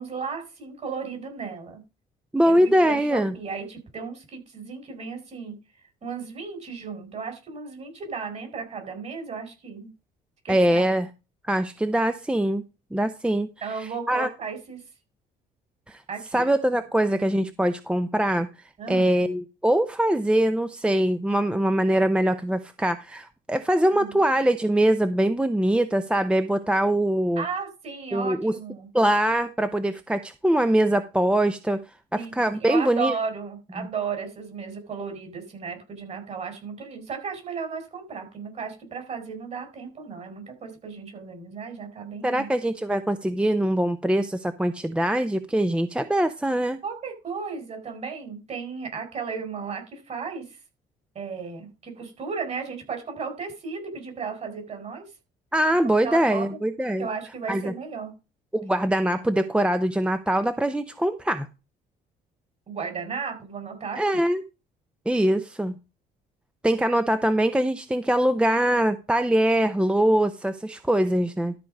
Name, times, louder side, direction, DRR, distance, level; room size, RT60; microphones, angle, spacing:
voice 1, 0.0-1.8 2.4-5.6 6.0-9.9 10.4-10.9 13.6-14.8 16.1-16.4 18.8-19.1 23.9-24.2 27.4-28.9 32.1-42.5 46.8-50.6 51.1-55.0 55.8-56.6 57.0-58.1 62.7-64.0, right 5 dB, 40° right, 5 dB, 4.8 m, -34 dB
voice 2, 2.3-3.3 10.5-11.1 11.5-12.6 12.9-13.5 13.8-14.3 15.9-16.0 16.3-18.5 18.9-27.4 28.1-28.6 28.9-31.8 32.1-33.2 33.8-33.9 42.2-46.8 55.5-57.1 57.5-57.7 58.5-61.5 64.0-64.4 65.1-65.7 66.6-71.5, right 1 dB, 5° right, 10 dB, 0.7 m, -23 dB
13.0 x 4.7 x 5.3 m, 0.29 s
cardioid pair, 110°, 17 cm